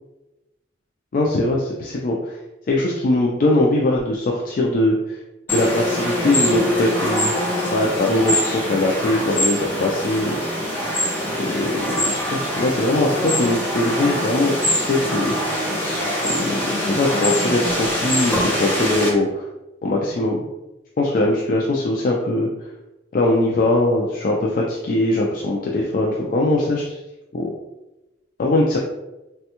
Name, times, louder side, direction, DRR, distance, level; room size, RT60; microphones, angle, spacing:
voice 1, 1.1-2.4 2.7-5.2 5.5-7.3 7.7-10.4 11.4-15.5 16.2-19.4 19.8-20.5 21.0-22.5 23.1-27.0 27.3-27.5 28.4-28.8, left 2 dB, 50° left, -2 dB, 0.3 m, -21 dB
sound 1, 5.5-19.1, left 1 dB, 10° left, 0.8 m, -23 dB
3.3 x 2.2 x 2.8 m, 1.0 s
head